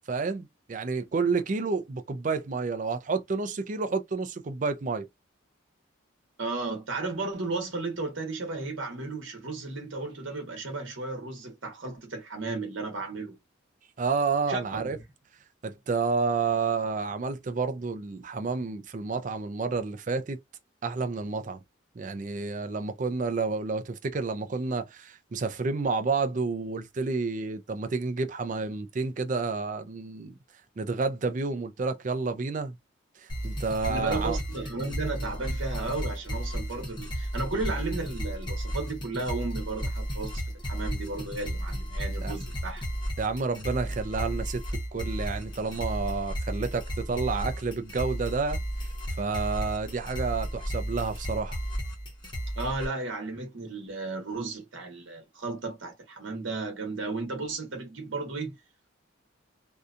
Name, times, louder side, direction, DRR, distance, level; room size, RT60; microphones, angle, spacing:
voice 1, 0.1-5.1 14.0-15.0 15.6-20.4 20.8-21.6 22.0-30.3 30.8-32.8 33.4-34.4 42.2-42.3 43.2-44.6 44.9-48.6 49.2-51.6, right 4 dB, 40° right, 0.4 m, -30 dB
voice 2, 6.4-13.4 14.5-14.9 33.9-42.8 52.6-58.6, right 3 dB, 70° right, 1.0 m, -34 dB
sound 1, 33.3-52.9, equal, 25° left, 0.9 m, -33 dB
2.7 x 2.2 x 2.4 m
head